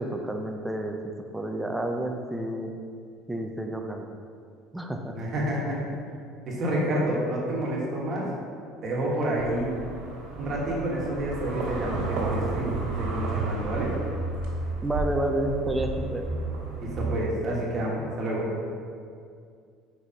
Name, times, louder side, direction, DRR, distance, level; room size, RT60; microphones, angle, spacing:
voice 1, 0.0-2.7 3.3-4.1 4.7-5.2 14.8-16.3, right 1 dB, 5° right, 4 dB, 0.4 m, -30 dB
voice 2, 5.1-5.8 6.5-8.2 8.8-9.7 10.4-13.9 16.8-18.5, right 1 dB, 30° right, -4 dB, 1.2 m, -29 dB
sound 1, 9.4-17.1, right 3 dB, 80° right, 1.4 m, -32 dB
4.7 x 4.2 x 4.9 m, 2.3 s
cardioid pair, 170°, 0 cm